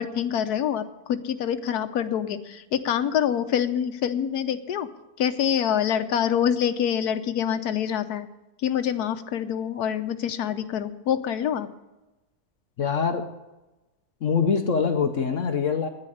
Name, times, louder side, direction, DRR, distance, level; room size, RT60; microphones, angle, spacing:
voice 1, 0.0-4.9 5.2-8.3 8.6-11.7, left 9 dB, 80° left, 10 dB, 1.3 m, -26 dB
voice 2, 12.8-13.3 14.2-15.9, left 6 dB, 60° left, 7 dB, 1.1 m, -24 dB
10.5 x 9.9 x 9.9 m, 1.0 s
omnidirectional pair, 1.6 m